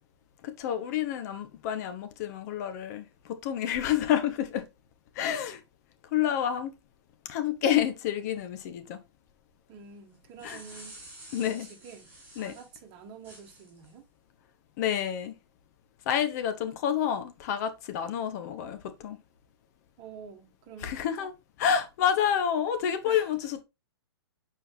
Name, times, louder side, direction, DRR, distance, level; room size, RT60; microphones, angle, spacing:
voice 1, 0.4-4.7 5.1-5.6 6.1-6.7 7.3-9.0 10.4-10.6 11.3-11.7 12.4-12.5 14.8-15.3 16.1-19.2 20.8-21.3 21.6-23.6, left 9 dB, 40° left, 1.0 m, -29 dB
voice 2, 9.7-10.9 11.4-12.1 12.4-14.1 20.0-21.3 23.0-23.4, right 6 dB, 35° right, 1.4 m, -48 dB
sound 1, 10.1-12.7 13.2-13.9, right 1 dB, 15° right, 4.6 m, -49 dB
7.8 x 4.7 x 3.3 m
figure-of-eight pair, 115°, 14 cm